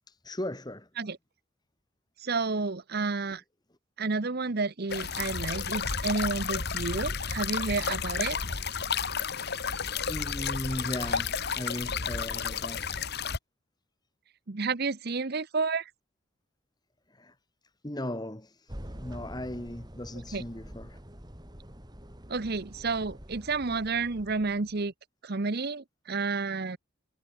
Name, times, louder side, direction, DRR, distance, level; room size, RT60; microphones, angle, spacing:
voice 1, 0.1-0.9 3.2-3.4 10.1-13.0 17.1-17.3 17.8-21.0, left 1 dB, 20° left, 1.6 m, -37 dB
voice 2, 2.2-3.4 4.0-8.4 14.5-15.9 20.3-20.4 22.3-24.9 25.2-26.8, right 4 dB, 45° right, 0.8 m, -30 dB
sound 1, 4.9-13.4, left 6 dB, 50° left, 1.7 m, -32 dB
sound 2, 18.7-24.9, equal, 20° right, 3.3 m, -46 dB
head